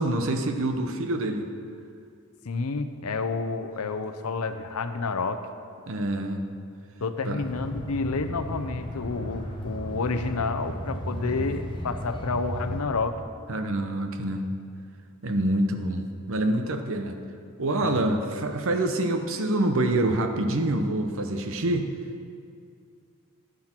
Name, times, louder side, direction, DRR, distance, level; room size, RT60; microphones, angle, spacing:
voice 1, 0.0-1.5 5.9-6.4 7.2-7.4 11.2-11.4 13.5-14.5 15.2-17.2 17.6-21.9, right 1 dB, 60° right, 6 dB, 0.9 m, -26 dB
voice 2, 2.4-5.4 7.0-13.2 17.8-18.1, left 4 dB, 75° left, 8 dB, 0.7 m, -30 dB
sound 1, 7.4-12.9, equal, 20° left, 1.0 m, -35 dB
11.5 x 9.7 x 4.4 m, 2.4 s
head